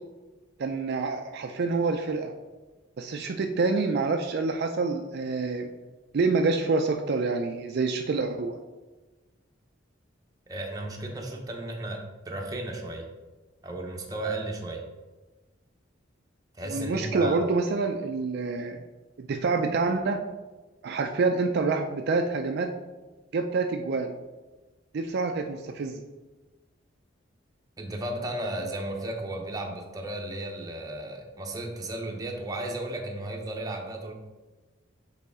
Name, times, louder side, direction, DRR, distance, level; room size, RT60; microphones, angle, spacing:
voice 1, 0.6-2.3 3.0-5.7 6.1-8.6 16.7-18.8 19.2-20.2 20.8-22.7 23.3-24.1 24.9-26.0, right 4 dB, 60° right, 4 dB, 0.4 m, -27 dB
voice 2, 10.5-13.1 13.6-14.8 16.5-17.4 27.8-34.1, right 1 dB, 20° right, 1 dB, 0.9 m, -34 dB
6.7 x 4.0 x 3.6 m, 1.2 s
head